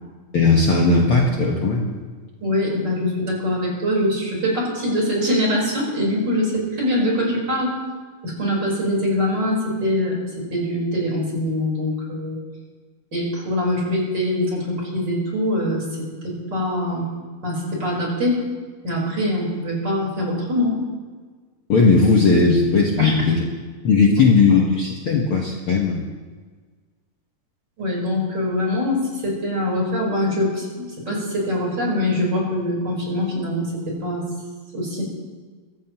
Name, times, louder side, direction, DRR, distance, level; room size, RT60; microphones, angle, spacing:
voice 1, 0.3-2.0 21.7-23.4 23.8-26.1, left 4 dB, 55° left, -1 dB, 1.8 m, -17 dB
voice 2, 2.4-7.7 8.2-12.4 13.1-17.0 17.4-18.4 18.8-20.8 23.0-23.1 27.8-34.2 34.7-35.0, left 1 dB, 30° right, -3 dB, 4.9 m, -23 dB
24.0 x 15.0 x 3.0 m, 1.4 s
omnidirectional pair, 3.6 m